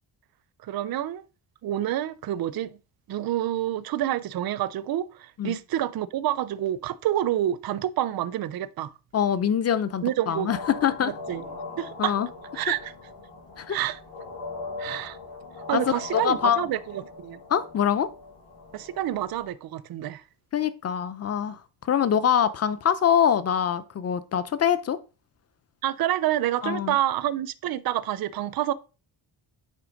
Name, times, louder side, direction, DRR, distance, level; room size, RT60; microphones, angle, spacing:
voice 1, 0.6-1.2 1.6-2.8 3.1-8.9 10.0-10.5 11.1-11.4 11.8-12.1 12.6-12.9 13.7-14.0 14.8-15.2 15.7-17.4 18.7-20.2 25.8-28.7, right 12 dB, 50° right, 0.5 m, -28 dB
voice 2, 9.1-11.1 12.0-12.3 13.6-13.8 15.7-15.8 16.1-16.6 17.5-18.1 20.5-21.6 21.9-25.0 26.6-27.0, left 8 dB, 30° left, 0.6 m, -24 dB
sound 1, 10.5-19.5, left 3 dB, 50° left, 4.1 m, -40 dB
8.2 x 3.3 x 5.1 m
wide cardioid pair, 140°, 49 cm